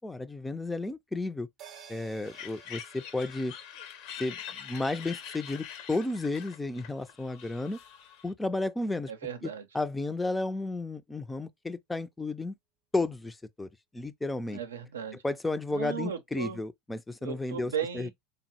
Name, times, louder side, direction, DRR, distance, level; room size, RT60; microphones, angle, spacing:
voice 1, 0.0-1.5 1.9-3.5 4.2-7.8 8.2-9.1 9.7-12.5 12.9-13.7 13.9-14.6 15.2-18.1, left 2 dB, 10° left, 0.4 m, -33 dB
sound 1, 1.6-6.3 6.6-6.7, right 8 dB, 50° right, 0.6 m, -55 dB
sound 2, 2.2-8.3, left 9 dB, 60° left, 0.7 m, -45 dB
voice 2, 9.1-9.7 14.5-15.2 15.7-16.6 17.2-18.1, right 7 dB, 90° right, 0.5 m, -36 dB
3.5 x 2.0 x 2.8 m
hypercardioid pair, 90°, 0 cm